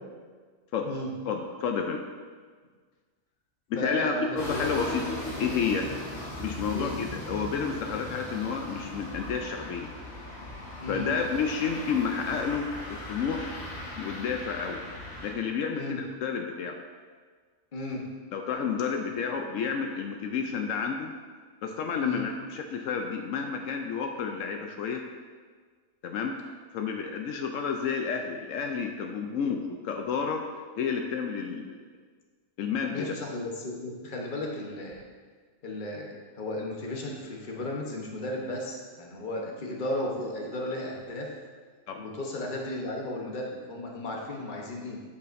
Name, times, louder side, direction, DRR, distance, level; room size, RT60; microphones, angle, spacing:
voice 1, 1.2-2.0 3.7-5.9 6.4-9.9 10.9-13.5 13.9-14.8 15.2-16.8 18.3-21.1 21.6-25.0 26.0-26.4 26.7-30.4 30.8-31.8 32.6-33.1 41.9-42.0, left 6 dB, 80° left, 4 dB, 1.0 m, -30 dB
voice 2, 3.7-4.7 6.7-6.9 10.8-11.1 15.7-16.0 17.7-18.1 19.0-19.1 22.0-22.3 32.9-35.0 35.6-41.3 42.0-45.0, left 1 dB, 40° left, -1 dB, 1.1 m, -34 dB
sound 1, 4.4-15.3, left 1 dB, 65° left, 1.7 m, -38 dB
8.1 x 7.0 x 2.6 m, 1.5 s
omnidirectional pair, 1.3 m